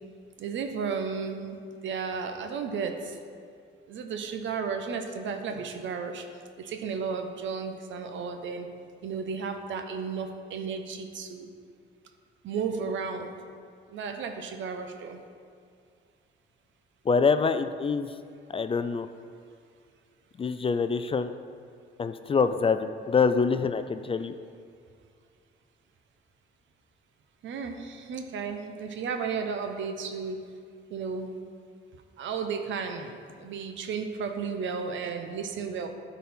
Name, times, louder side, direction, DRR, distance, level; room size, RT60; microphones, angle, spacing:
voice 1, 0.4-1.6 1.8-3.2 3.9-6.2 6.6-8.7 9.0-11.5 12.4-13.3 13.9-15.2 27.4-30.5 30.9-31.3 32.2-35.9, right 5 dB, 70° right, 6 dB, 0.9 m, -33 dB
voice 2, 17.1-18.1 18.5-19.1 20.4-21.3 22.0-24.3, left 5 dB, 30° left, 10 dB, 0.3 m, -25 dB
12.0 x 4.1 x 4.3 m, 2.2 s
cardioid pair, 90°, 20 cm